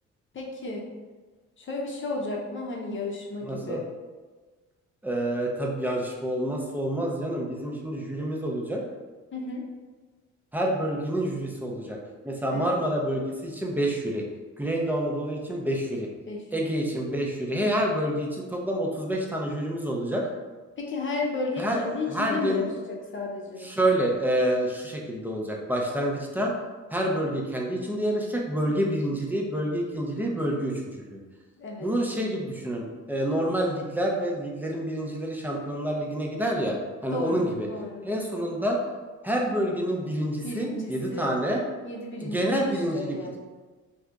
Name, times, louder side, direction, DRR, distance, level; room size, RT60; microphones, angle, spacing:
voice 1, 0.3-0.8 1.6-3.9 9.3-9.6 12.5-12.7 16.3-16.4 20.8-23.7 31.6-31.9 37.1-38.1 40.4-41.3 41.8-42.4 42.9-43.4, left 3 dB, 40° left, -1 dB, 0.8 m, -33 dB
voice 2, 3.4-3.8 5.0-8.8 10.5-12.0 12.2-14.2 14.6-16.1 16.5-20.3 21.6-21.8 22.1-22.6 23.6-26.5 26.9-31.2 31.8-37.7 38.0-38.8 39.2-41.6 42.2-43.4, right 1 dB, 5° right, -1 dB, 0.6 m, -28 dB
2.8 x 2.4 x 3.4 m, 1.3 s
cardioid pair, 90°, 30 cm